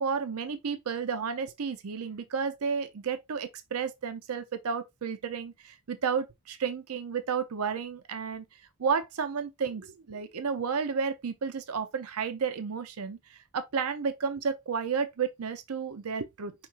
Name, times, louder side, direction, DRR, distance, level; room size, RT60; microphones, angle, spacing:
voice 1, 0.0-8.5 8.8-16.5, right 6 dB, 80° right, 0.6 m, -32 dB
5.8 x 3.7 x 2.4 m
head